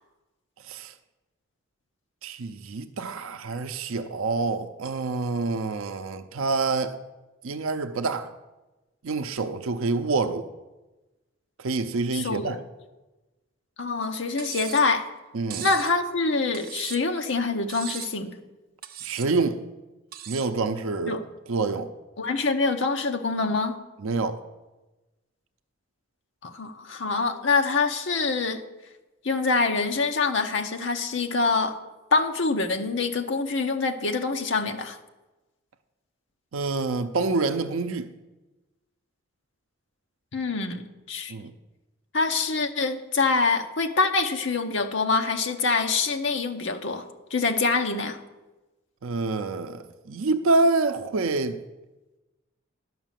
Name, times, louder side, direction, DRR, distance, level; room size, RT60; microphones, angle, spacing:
voice 1, 2.2-7.0 7.4-8.3 9.0-10.5 11.6-12.6 15.3-15.7 19.0-19.6 20.3-21.2 21.5-21.9 24.0-24.4 36.5-38.1 41.3-41.5 49.0-51.6, right 3 dB, 85° right, 0.6 m, -27 dB
voice 2, 12.1-12.6 13.8-15.1 15.6-18.3 21.1-21.2 22.2-23.8 26.4-28.6 29.2-31.8 32.1-35.0 40.3-41.3 42.1-48.2, left 4 dB, 65° left, 0.8 m, -25 dB
Cutlery silverware, 14.4-14.9 15.5-15.9 16.5-17.2 17.7-18.2 18.8-19.3 20.1-20.5, right 10 dB, 45° right, 0.6 m, -38 dB
11.0 x 5.8 x 7.4 m
head